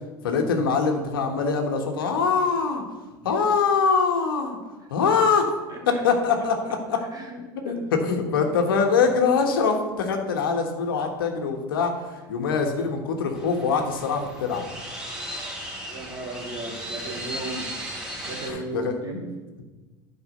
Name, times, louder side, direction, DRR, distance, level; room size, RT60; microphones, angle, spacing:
voice 1, 0.2-2.8 3.2-4.6 4.9-5.5 5.9-7.0 7.6-14.6 18.5-19.0, left 5 dB, 85° left, 4 dB, 1.4 m, -23 dB
voice 2, 5.7-6.0 7.1-8.5 15.9-17.8 18.2-19.3, right 2 dB, 35° right, 0 dB, 2.8 m, -36 dB
sound 1, 13.3-18.5, equal, 10° right, 3.1 m, -36 dB
9.9 x 5.0 x 6.5 m, 1.2 s
hypercardioid pair, 90°, 11 cm